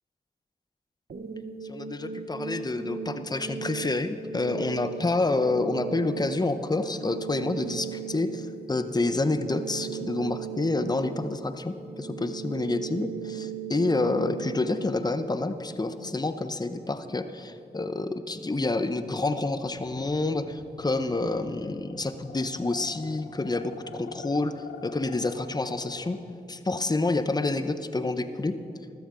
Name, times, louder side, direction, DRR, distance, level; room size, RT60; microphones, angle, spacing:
sound 1, 1.1-16.1, right 8 dB, 60° right, 0.9 m, -38 dB
voice 1, 1.7-24.5 24.8-26.2 26.5-28.5, left 2 dB, 20° left, 10 dB, 0.7 m, -28 dB
sound 2, 19.6-26.2, left 7 dB, 90° left, 0.6 m, -45 dB
14.0 x 13.0 x 3.8 m, 2.7 s
cardioid pair, 40°, 18 cm